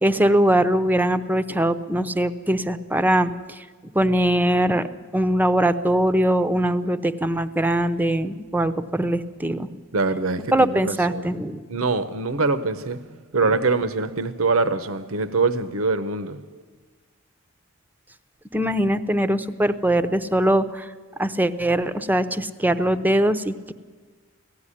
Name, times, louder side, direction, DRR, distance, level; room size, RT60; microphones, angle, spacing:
voice 1, 0.0-3.6 3.9-4.9 5.1-9.8 10.5-11.6 18.5-20.9 21.2-23.7, right 1 dB, 10° right, 0.6 m, -21 dB
voice 2, 9.9-11.3 11.7-13.0 13.3-16.6, right 3 dB, 70° right, 0.8 m, -24 dB
17.5 x 15.0 x 9.9 m
head